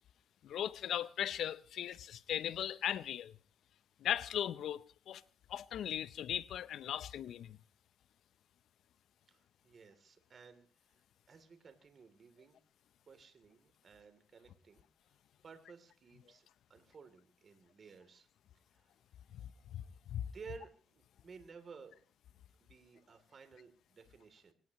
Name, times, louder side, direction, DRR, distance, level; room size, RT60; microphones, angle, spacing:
voice 1, 0.4-3.3 4.0-5.2 5.5-7.6 19.7-20.3, left 10 dB, 75° left, 0.7 m, -38 dB
voice 2, 9.3-10.7 10.9-12.6 13.1-15.2 15.4-18.3 18.7-18.9 20.3-22.0 22.6-24.5, right 5 dB, 45° right, 3.3 m, -56 dB
24.0 x 18.0 x 3.1 m
cardioid pair, 90°, 0 cm